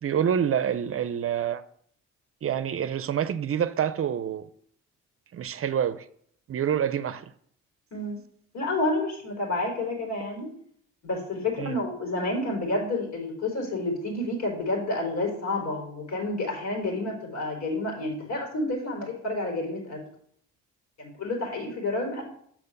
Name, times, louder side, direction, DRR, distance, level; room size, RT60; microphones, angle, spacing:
voice 1, 0.0-1.6 2.4-4.5 5.3-6.0 6.5-7.2 11.6-11.7, right 9 dB, 45° right, 0.6 m, -27 dB
voice 2, 7.9-8.2 8.5-10.5 11.0-20.0 21.0-22.2, left 2 dB, 60° left, 4.1 m, -29 dB
6.7 x 5.9 x 6.8 m
cardioid pair, 90°, 30 cm